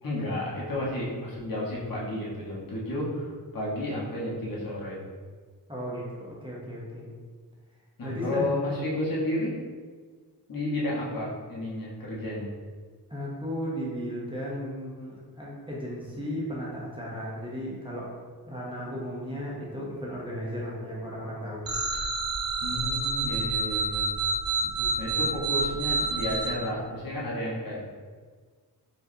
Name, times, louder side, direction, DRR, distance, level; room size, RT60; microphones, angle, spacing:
voice 1, 0.0-5.0 8.0-9.6 10.5-12.5 22.6-24.0 25.0-27.9, left 1 dB, 60° left, -6 dB, 1.2 m, -32 dB
voice 2, 5.7-7.1 8.0-8.7 13.1-18.1 18.4-21.7 24.6-25.2, equal, 15° right, -6 dB, 0.8 m, -35 dB
sound 1, 21.6-26.5, right 4 dB, 60° right, 0.7 m, -28 dB
4.6 x 3.1 x 2.7 m, 1.5 s
wide cardioid pair, 125°, 39 cm